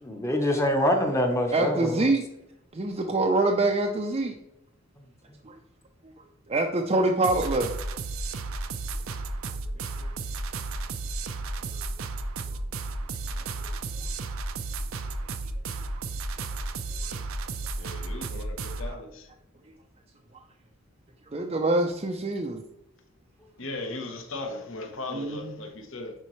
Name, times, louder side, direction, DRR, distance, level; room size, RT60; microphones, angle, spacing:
voice 1, 0.0-2.0, left 1 dB, 15° left, 3 dB, 0.9 m, -25 dB
voice 2, 1.5-2.2 2.7-4.3 5.5-5.6 6.5-7.7 13.6-13.7 21.3-22.6 25.1-25.5, right 2 dB, 30° right, 1 dB, 0.5 m, -25 dB
sound 1, 7.2-18.9, right 3 dB, 75° right, 0.6 m, -33 dB
voice 3, 17.8-19.3 23.6-26.1, left 2 dB, 65° left, 3 dB, 1.1 m, -37 dB
10.0 x 4.0 x 3.1 m, 0.84 s
head